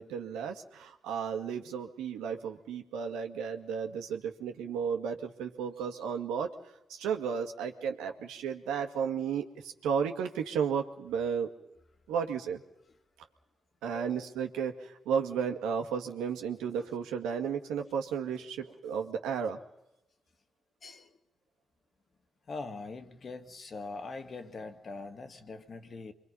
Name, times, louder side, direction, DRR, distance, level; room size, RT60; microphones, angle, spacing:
voice 1, 0.0-6.5 6.9-11.5 12.1-12.6 13.8-19.6, right 7 dB, 85° right, 2.0 m, -33 dB
voice 2, 13.9-14.3 20.8-21.1 22.5-26.1, left 3 dB, 55° left, 2.2 m, -42 dB
27.5 x 23.5 x 5.6 m
hypercardioid pair, 40°, 0 cm